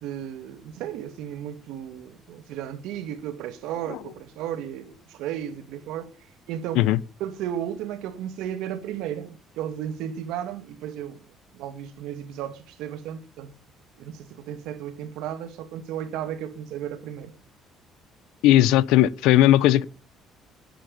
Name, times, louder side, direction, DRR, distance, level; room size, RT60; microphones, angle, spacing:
voice 1, 0.0-6.1 6.5-6.9 7.2-11.2 11.5-13.6 14.0-17.3, right 10 dB, 75° right, 2.0 m, -34 dB
voice 2, 18.4-19.8, left 13 dB, 85° left, 0.8 m, -17 dB
18.5 x 10.0 x 5.5 m
cardioid pair, 180°, 0 cm